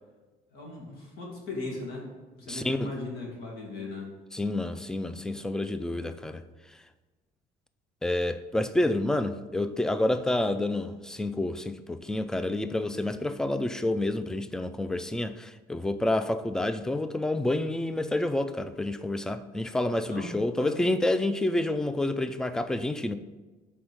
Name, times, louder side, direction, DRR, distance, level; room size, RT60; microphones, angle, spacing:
voice 1, 0.5-2.1 2.3-4.1 20.1-20.7, left 2 dB, 75° left, 2.1 m, -38 dB
voice 2, 2.5-2.9 4.3-6.4 8.0-23.2, left 1 dB, 5° left, 0.3 m, -28 dB
5.1 x 4.4 x 6.0 m
cardioid pair, 110°, 17 cm